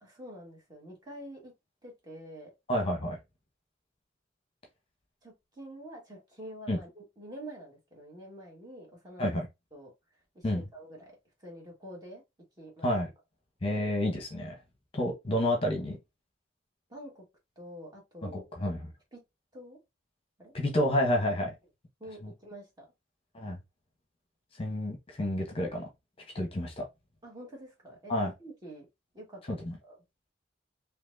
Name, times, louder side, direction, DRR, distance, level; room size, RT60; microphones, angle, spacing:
voice 1, 0.0-1.5 1.8-2.5 5.2-9.4 9.7-9.9 10.3-11.1 11.4-12.2 12.6-12.9 16.9-17.2 17.5-18.4 19.1-19.2 19.5-19.8 20.4-20.5 22.0-22.8 27.2-28.1 28.4-28.9 29.1-29.5 29.9-30.0, right 1 dB, 20° right, 1.6 m, -47 dB
voice 2, 2.7-3.2 6.7-6.8 9.2-9.5 10.4-10.6 12.8-13.1 13.6-14.5 14.9-16.0 18.2-18.9 20.5-21.5 22.2-22.3 23.3-23.6 24.6-25.8 26.3-26.9 28.1-28.3 29.5-29.7, left 1 dB, 30° left, 1.0 m, -29 dB
4.3 x 2.9 x 2.6 m
head